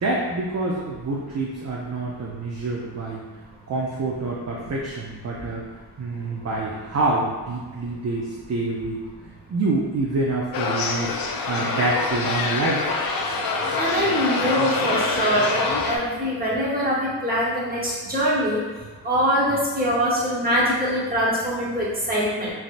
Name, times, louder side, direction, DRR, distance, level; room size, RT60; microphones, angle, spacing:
voice 1, 0.0-3.2 3.7-5.6 6.0-9.0 9.5-11.1 11.5-12.8, right 2 dB, 40° right, -3 dB, 0.5 m, -26 dB
sound 1, 10.5-16.0, left 4 dB, 60° left, 0.5 m, -25 dB
voice 2, 13.7-18.6 19.0-22.5, equal, 20° right, -7 dB, 1.1 m, -23 dB
3.3 x 2.6 x 2.5 m, 1.3 s
cardioid pair, 65°, 42 cm